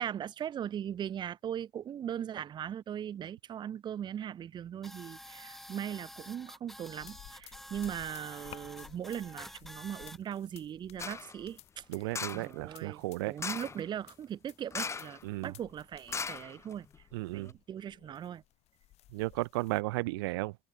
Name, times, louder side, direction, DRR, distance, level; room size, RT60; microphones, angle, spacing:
voice 1, 0.0-11.8 12.3-16.9 17.3-18.4, right 9 dB, 35° right, 0.8 m, -39 dB
sound 1, 4.8-10.2, equal, ahead, 0.7 m, -49 dB
sound 2, 7.0-19.8, left 15 dB, 55° left, 3.7 m, -56 dB
sound 3, 11.0-11.3 12.1-12.5 13.4-13.8 14.7-15.2 15.5-15.6 16.1-17.0 17.4-17.5, left 5 dB, 20° left, 1.2 m, -38 dB
voice 2, 11.9-13.4 15.2-15.5 17.1-17.5 19.1-20.6, right 22 dB, 70° right, 0.5 m, -34 dB
hypercardioid pair, 70°, 13 cm